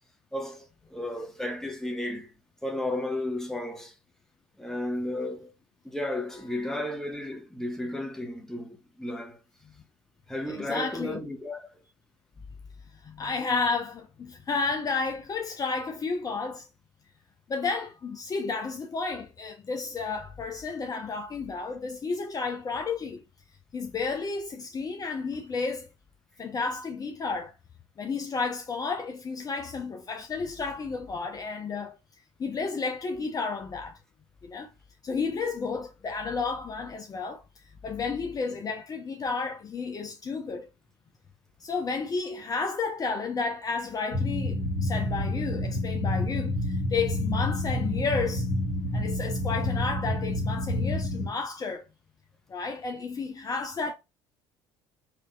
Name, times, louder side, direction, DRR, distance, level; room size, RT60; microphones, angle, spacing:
voice 1, 0.3-2.3 2.6-3.9 4.6-5.5 5.8-9.4 10.3-11.8, left 1 dB, 5° left, 1.2 m, -33 dB
voice 2, 10.5-11.2 12.9-16.7 17.5-23.2 23.7-25.9 26.4-27.5 28.0-32.0 32.4-34.0 34.4-34.7 35.0-37.4 37.8-40.7 41.6-48.5 48.9-51.9 52.5-53.9, left 4 dB, 30° left, 0.7 m, -32 dB
sound 1, 44.1-51.3, left 1 dB, 70° left, 1.6 m, -29 dB
5.0 x 2.8 x 2.3 m
hypercardioid pair, 60°, 11 cm